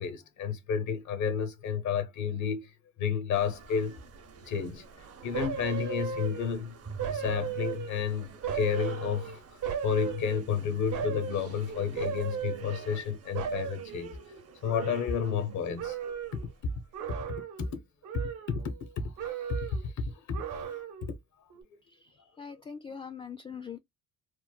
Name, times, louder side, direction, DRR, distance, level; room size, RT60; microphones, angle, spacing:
voice 1, 0.0-2.7 3.0-4.0 4.5-4.9 5.2-6.8 7.1-9.4 9.8-14.2 14.6-16.7 17.3-17.8 18.1-20.7 21.0-21.2, left 6 dB, 70° left, 0.7 m, -31 dB
sound 1, 3.3-17.1, right 5 dB, 50° right, 0.8 m, -49 dB
sound 2, 5.3-6.6 7.0-8.1 8.4-10.5 10.9-11.5 12.0-13.1 13.3-15.5 15.8-16.5 16.9-17.7 18.0-18.9 19.2-19.9 20.3-21.1 21.5-21.6, right 7 dB, 80° right, 0.9 m, -36 dB
voice 2, 21.8-23.8, left 6 dB, 20° left, 0.3 m, -43 dB
3.1 x 2.0 x 2.3 m
cardioid pair, 90°, 30 cm